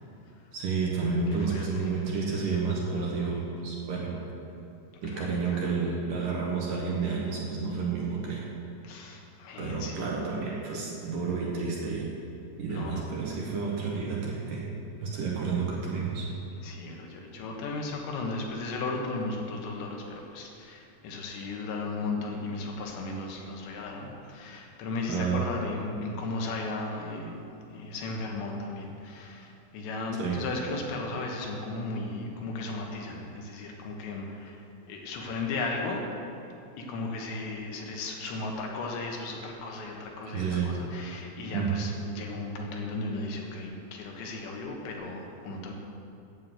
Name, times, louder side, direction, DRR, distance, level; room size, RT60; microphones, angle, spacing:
voice 1, 0.5-4.1 5.0-8.5 9.6-12.1 12.6-14.7 15.0-16.3 25.1-25.5 30.2-30.4 40.3-40.8 41.5-41.8, right 5 dB, 65° right, -3 dB, 2.6 m, -30 dB
voice 2, 1.3-1.9 5.1-5.6 8.8-10.1 12.7-13.1 16.6-27.4 27.7-34.6 34.9-36.0 36.8-45.7, left 3 dB, 85° left, 0 dB, 3.6 m, -35 dB
9.5 x 8.5 x 7.7 m, 2.7 s
omnidirectional pair, 5.0 m